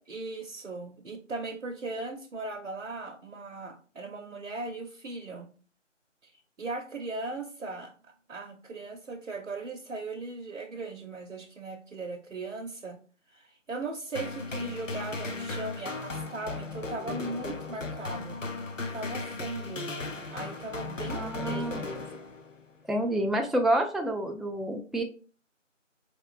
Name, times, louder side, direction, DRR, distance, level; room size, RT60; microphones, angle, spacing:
voice 1, 0.1-5.5 6.2-6.3 6.6-13.0 13.3-18.4 18.9-19.9 20.3-21.9, right 3 dB, 75° right, 2 dB, 0.7 m, -38 dB
sound 1, 14.1-22.6, left 3 dB, 75° left, 0.8 m, -36 dB
voice 2, 21.1-21.8 22.9-25.0, right 1 dB, ahead, 2 dB, 0.3 m, -28 dB
4.7 x 3.0 x 2.4 m, 0.39 s
figure-of-eight pair, 175°, 38 cm